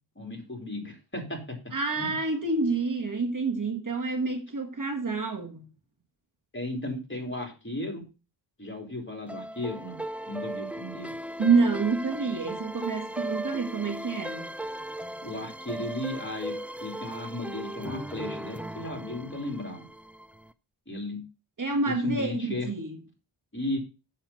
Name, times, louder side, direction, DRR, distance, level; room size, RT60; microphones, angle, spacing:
voice 1, 0.1-1.6 2.0-2.1 6.5-8.0 8.6-10.0 10.3-11.1 15.2-19.9 20.9-21.2 21.8-22.7 23.5-23.8, left 1 dB, 25° left, 3.4 m, -35 dB
voice 2, 1.7-5.7 11.4-14.5 21.6-23.0, right 4 dB, 40° right, 1.5 m, -28 dB
sound 1, 9.3-20.5, right 1 dB, 5° right, 0.4 m, -37 dB
7.6 x 7.1 x 5.6 m
wide cardioid pair, 80°, 48 cm